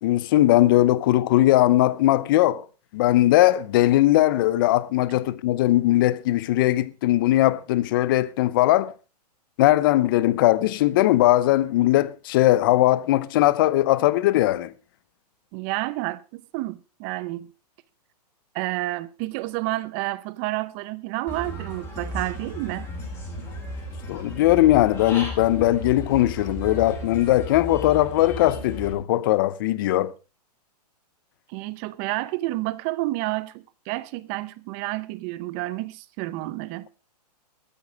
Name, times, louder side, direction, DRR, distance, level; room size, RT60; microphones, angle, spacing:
voice 1, 0.0-2.6 2.9-8.9 9.6-14.7 24.1-30.1, left 15 dB, 30° left, 0.7 m, -19 dB
voice 2, 15.5-17.5 18.5-22.9 31.5-36.9, right 19 dB, 20° right, 0.6 m, -30 dB
Human voice / Bird, 21.3-28.9, equal, 10° left, 4.2 m, -35 dB
13.5 x 12.5 x 4.7 m
hypercardioid pair, 165°, 21 cm